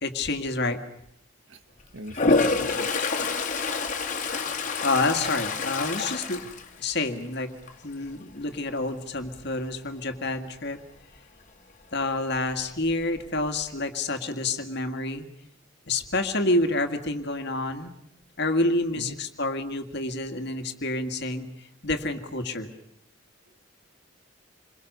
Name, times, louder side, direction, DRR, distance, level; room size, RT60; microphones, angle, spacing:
voice 1, 0.0-0.8 4.8-6.4 6.8-7.5 7.8-10.8 11.9-15.2 15.9-17.9 18.4-22.7, left 2 dB, 55° left, 6 dB, 2.1 m, -28 dB
voice 2, 1.9-2.9 19.0-19.2, right 1 dB, 75° right, 9 dB, 1.8 m, -40 dB
Toilet flush, 2.1-7.3 7.7-8.1 12.5-12.6 12.9-13.6, left 3 dB, 40° left, 2.2 m, -27 dB
28.0 x 22.5 x 6.8 m, 0.77 s
head